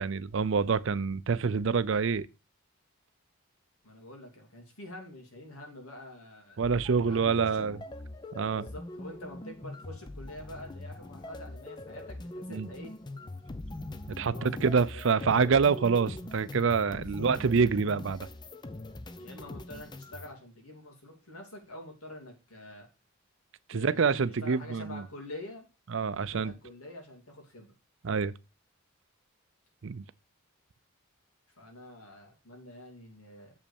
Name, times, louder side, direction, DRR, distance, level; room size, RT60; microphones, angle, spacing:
voice 1, 0.0-2.3 6.6-7.8 8.3-8.7 12.5-12.7 14.1-18.3 23.7-25.0 25.9-26.5 28.0-28.3 29.8-30.0, right 5 dB, 60° right, 0.5 m, -26 dB
voice 2, 3.8-6.6 7.0-7.7 8.5-12.9 14.3-15.3 16.9-17.3 19.2-22.9 23.7-25.7 26.1-27.7 31.6-33.5, left 1 dB, 85° left, 3.0 m, -47 dB
sound 1, 6.6-20.3, left 2 dB, 20° left, 0.5 m, -42 dB
7.3 x 5.3 x 7.0 m
head